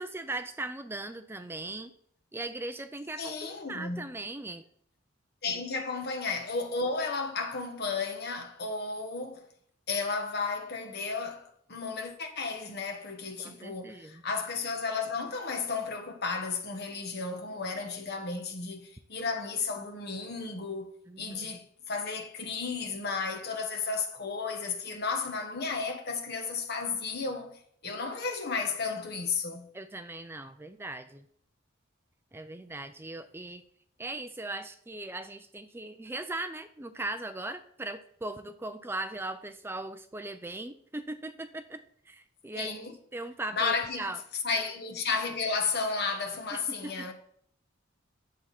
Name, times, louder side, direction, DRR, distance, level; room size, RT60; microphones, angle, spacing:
voice 1, 0.0-1.9 2.3-4.6 13.4-14.2 21.1-21.6 29.7-31.3 32.3-33.6 34.0-44.2 46.5-47.1, right 2 dB, 10° right, 0.4 m, -39 dB
voice 2, 3.2-4.1 5.4-9.5 9.9-20.9 21.2-29.7 42.5-43.0 43.5-44.1 44.4-47.1, left 4 dB, 55° left, 1.5 m, -33 dB
10.5 x 7.3 x 4.2 m
head